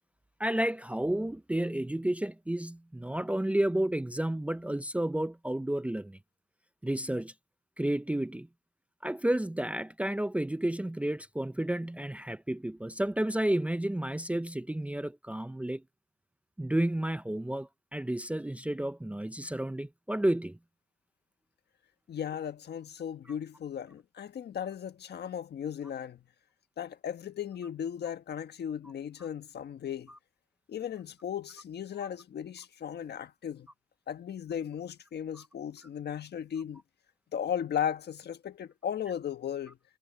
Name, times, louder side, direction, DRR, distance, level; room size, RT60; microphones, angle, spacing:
voice 1, 0.4-6.2 6.8-7.3 7.8-8.5 9.0-15.8 16.6-20.6, right 1 dB, 5° right, 0.7 m, -31 dB
voice 2, 22.1-26.2 26.8-30.1 30.7-33.7 34.1-36.8 37.3-39.8, left 9 dB, 55° left, 1.5 m, -36 dB
cardioid pair, 90°, 20 cm